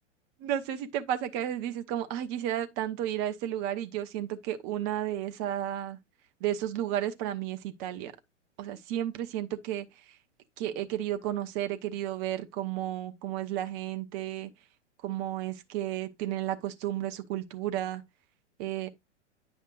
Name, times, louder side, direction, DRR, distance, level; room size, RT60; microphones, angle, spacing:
voice 1, 0.4-6.0 6.4-8.1 8.6-10.2 10.6-14.5 15.0-18.0 18.6-18.9, right 12 dB, 30° right, 0.8 m, -33 dB
9.8 x 5.4 x 2.4 m
figure-of-eight pair, 105°, 36 cm